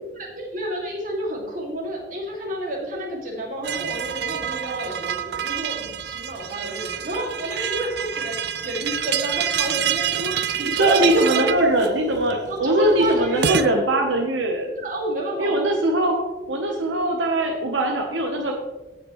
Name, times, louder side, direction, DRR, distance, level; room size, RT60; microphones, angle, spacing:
voice 1, 0.2-11.0 11.3-11.7 12.5-13.6 14.8-15.6, right 1 dB, 45° right, -2 dB, 2.6 m, -29 dB
sound 1, 3.6-13.7, right 9 dB, 60° right, 0.5 m, -27 dB
voice 2, 10.6-14.7 15.4-16.2 16.5-18.5, right 1 dB, 85° right, 2 dB, 1.1 m, -21 dB
16.0 x 5.9 x 3.2 m, 1.2 s
head